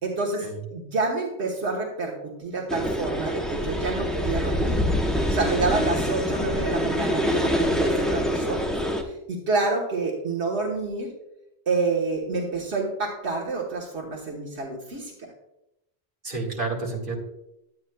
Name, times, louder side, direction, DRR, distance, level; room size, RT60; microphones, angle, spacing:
voice 1, 0.0-4.8 5.3-11.1 11.7-15.1, right 3 dB, 85° right, -2 dB, 1.6 m, -28 dB
sound 1, 2.7-9.0, equal, ahead, 0.8 m, -25 dB
voice 2, 16.2-17.2, right 3 dB, 50° right, -4 dB, 2.2 m, -30 dB
11.5 x 8.9 x 2.2 m, 0.86 s
omnidirectional pair, 1.1 m